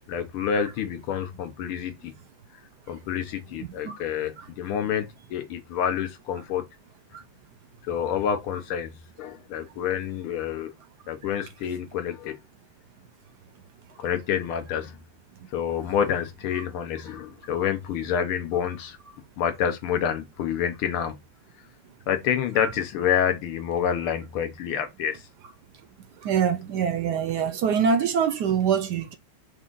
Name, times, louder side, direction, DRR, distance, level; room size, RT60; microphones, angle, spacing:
voice 1, 0.1-2.1 2.9-6.6 7.8-8.9 9.2-10.7 11.1-12.4 14.0-15.0 15.5-19.0 19.4-21.2 22.1-25.2, left 8 dB, 80° left, 1.8 m, -28 dB
voice 2, 3.6-4.0 4.4-4.5 7.1-7.2 15.4-15.5 16.5-16.6 17.6-17.7 22.6-22.7 26.1-29.2, right 7 dB, 75° right, 0.9 m, -25 dB
4.9 x 2.6 x 3.7 m
omnidirectional pair, 2.3 m